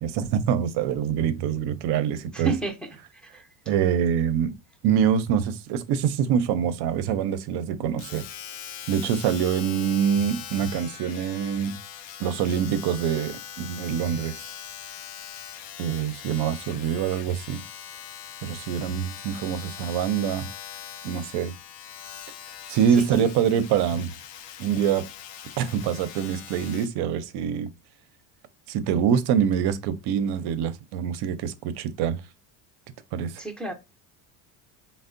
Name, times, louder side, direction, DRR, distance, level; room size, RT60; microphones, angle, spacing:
voice 1, 0.0-2.5 3.7-4.5 4.8-8.3 8.9-11.8 12.2-14.4 15.8-17.6 18.4-20.5 21.0-21.5 22.7-24.1 24.6-25.1 25.6-27.7 28.7-32.2 33.1-33.3, right 8 dB, 60° right, 0.5 m, -25 dB
voice 2, 2.3-2.9 3.3-3.7 23.0-23.3 33.4-33.7, right 3 dB, ahead, 0.5 m, -31 dB
Domestic sounds home sounds, 8.0-27.0 27.7-27.8, left 10 dB, 65° left, 0.5 m, -41 dB
3.4 x 2.1 x 2.5 m
supercardioid pair, 100°, 47 cm